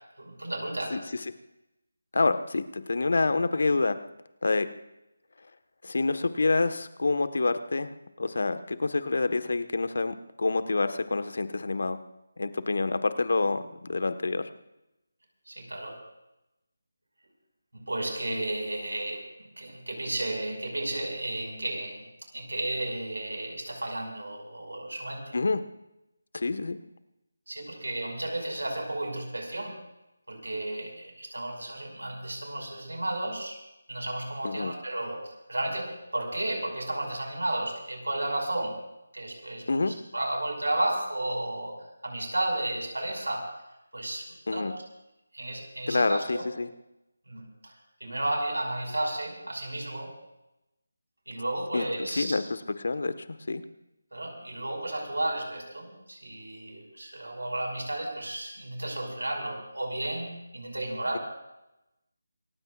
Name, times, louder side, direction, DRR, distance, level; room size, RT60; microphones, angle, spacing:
voice 1, 0.2-0.9 15.5-16.0 17.7-19.2 19.6-22.1 22.3-25.4 27.5-29.8 30.3-33.6 33.9-38.7 39.1-41.8 42.0-43.5 43.9-44.7 45.3-46.5 47.3-50.1 51.3-52.4 54.1-61.2, right 1 dB, 85° right, 2 dB, 5.9 m, -33 dB
voice 2, 2.1-4.0 4.4-4.7 5.8-12.0 12.4-14.5 25.3-25.7 26.3-26.8 34.4-34.7 39.7-40.0 44.5-44.7 45.9-46.7 51.7-53.6, left 3 dB, 60° left, 10 dB, 1.5 m, -27 dB
28.5 x 15.5 x 2.6 m, 0.91 s
figure-of-eight pair, 160°, 0 cm